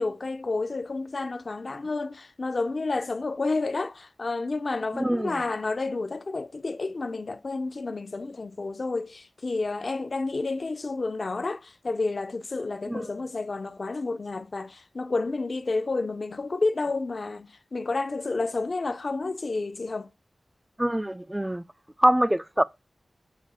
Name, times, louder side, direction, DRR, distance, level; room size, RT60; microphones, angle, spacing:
voice 1, 0.0-20.1, left 3 dB, 55° left, 0.4 m, -30 dB
voice 2, 4.9-5.3 12.9-13.1 20.8-21.6 22.0-22.6, right 1 dB, 10° right, 0.4 m, -24 dB
7.5 x 4.2 x 5.5 m
wide cardioid pair, 85°, 0 cm